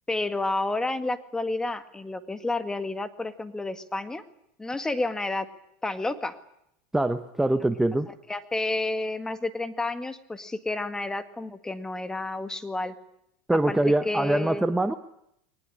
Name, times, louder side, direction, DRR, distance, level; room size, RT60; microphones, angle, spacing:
voice 1, 0.1-4.2 4.6-5.5 5.8-6.4 8.3-12.9 13.7-13.8 14.1-14.6, left 2 dB, 10° left, 10 dB, 1.9 m, -30 dB
voice 2, 6.9-8.1 13.5-14.9, right 1 dB, 5° right, 9 dB, 1.1 m, -23 dB
22.5 x 19.5 x 10.0 m, 0.76 s
supercardioid pair, 115°, 6 cm